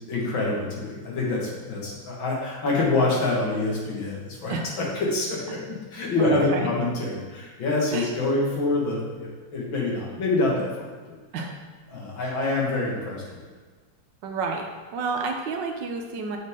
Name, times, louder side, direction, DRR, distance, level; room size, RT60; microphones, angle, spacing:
voice 1, 0.1-11.2 11.9-13.2, left 2 dB, 85° left, -4 dB, 2.5 m, -26 dB
voice 2, 6.2-6.6 7.9-8.1 11.3-11.6 12.2-12.3 14.2-16.4, right 4 dB, 70° right, 3 dB, 1.4 m, -30 dB
7.4 x 6.0 x 3.7 m, 1.4 s
omnidirectional pair, 2.1 m